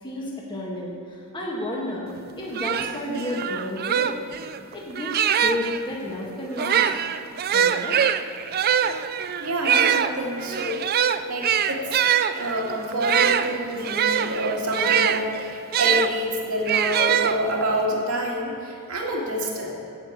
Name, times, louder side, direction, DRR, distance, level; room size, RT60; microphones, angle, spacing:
voice 1, 0.0-2.1 2.4-4.1 4.7-6.9 7.5-8.0, left 1 dB, 20° left, -3 dB, 1.6 m, -31 dB
sound 1, 2.2-2.3 2.5-5.8 6.5-16.1 16.7-17.8, right 8 dB, 45° right, 0.4 m, -23 dB
voice 2, 9.4-10.8 11.3-11.8 12.4-19.7, equal, 75° right, -2 dB, 2.2 m, -27 dB
9.0 x 8.2 x 8.2 m, 2.7 s
head